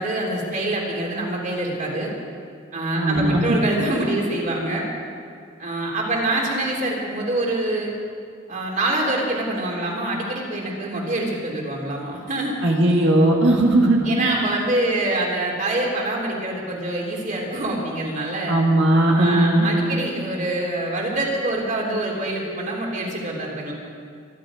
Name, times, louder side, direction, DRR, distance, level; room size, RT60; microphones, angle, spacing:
voice 1, 0.0-2.1 2.7-4.9 5.6-7.9 8.5-12.6 14.0-18.6 19.1-23.7, right 1 dB, 40° right, -2 dB, 3.4 m, -25 dB
voice 2, 3.0-3.6 12.6-14.4 18.5-19.7, right 1 dB, 65° right, -1 dB, 2.1 m, -18 dB
24.5 x 11.0 x 5.1 m, 2.3 s
head